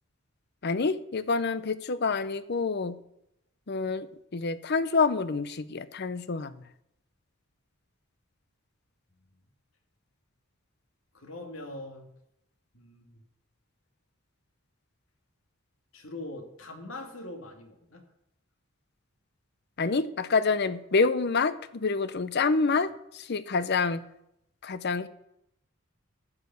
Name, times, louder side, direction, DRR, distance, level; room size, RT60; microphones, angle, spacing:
voice 1, 0.6-3.0 3.7-4.1 4.3-6.5 19.8-24.0 24.6-25.1, left 4 dB, 50° left, 14 dB, 0.6 m, -27 dB
voice 2, 11.1-12.1 12.7-13.2 15.9-18.0, left 2 dB, 70° left, 4 dB, 1.9 m, -42 dB
12.5 x 4.9 x 8.1 m, 0.79 s
head